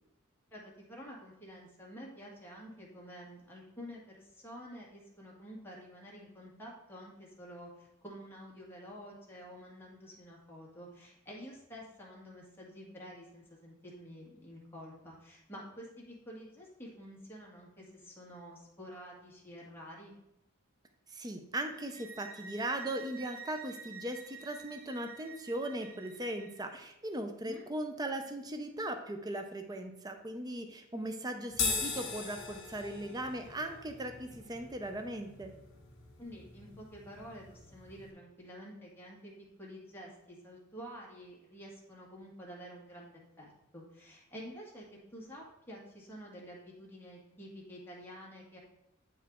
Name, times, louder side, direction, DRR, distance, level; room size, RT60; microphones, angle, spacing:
voice 1, 0.5-20.2 27.4-27.6 36.2-39.3 39.6-48.6, equal, 10° left, -4 dB, 1.7 m, -49 dB
voice 2, 21.1-35.5, right 1 dB, 20° right, 5 dB, 0.5 m, -38 dB
sound 1, 21.7-26.6, right 5 dB, 85° right, 1.0 m, -50 dB
sound 2, 31.5-38.1, left 4 dB, 60° left, 1.7 m, -40 dB
8.2 x 4.7 x 3.6 m, 0.83 s
head